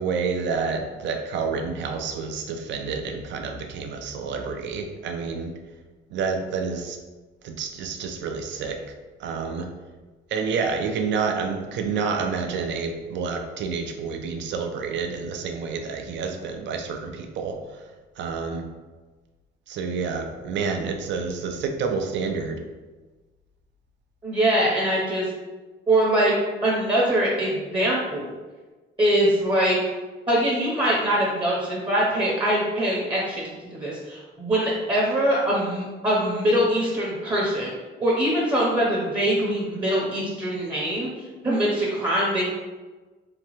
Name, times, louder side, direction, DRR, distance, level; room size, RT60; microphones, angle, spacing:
voice 1, 0.0-5.5 6.1-7.0 7.4-8.8 9.2-9.7 10.3-17.8 18.2-18.7 19.7-22.6, right 5 dB, 70° right, 5 dB, 0.4 m, -29 dB
voice 2, 24.2-25.3 25.9-26.3 26.6-28.4 29.0-29.8 30.3-37.7 38.0-41.1 41.4-42.4, right 1 dB, 25° right, -5 dB, 0.7 m, -23 dB
2.9 x 2.2 x 3.0 m, 1.3 s
cardioid pair, 90°, 20 cm